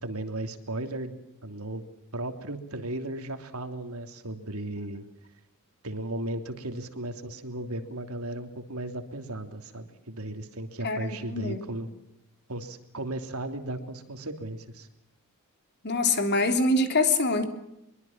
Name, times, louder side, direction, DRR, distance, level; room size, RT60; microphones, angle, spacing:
voice 1, 0.0-1.8 2.1-5.0 5.8-11.9 12.5-14.9, right 1 dB, 75° right, 7 dB, 3.1 m, -35 dB
voice 2, 10.8-11.8 15.8-17.5, left 2 dB, 50° left, 7 dB, 3.6 m, -25 dB
24.0 x 23.5 x 7.4 m, 0.84 s
head